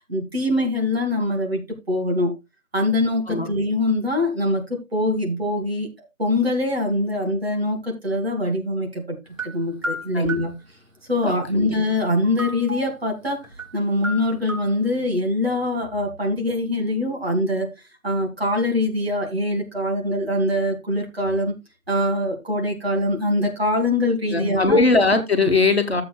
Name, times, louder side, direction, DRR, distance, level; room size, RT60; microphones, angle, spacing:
voice 1, 0.1-2.3 2.7-5.9 6.2-9.2 9.4-10.5 11.1-13.4 13.7-17.7 18.0-21.5 21.9-24.8, left 1 dB, 45° right, 2.6 m, -23 dB
sound 1, 9.4-10.5 12.1-13.0 13.4-13.7 14.0-14.7, right 1 dB, 65° right, 2.3 m, -32 dB
voice 2, 11.2-11.7 24.3-26.0, left 3 dB, 45° left, 1.5 m, -20 dB
14.0 x 7.7 x 2.3 m
figure-of-eight pair, 165°, 42 cm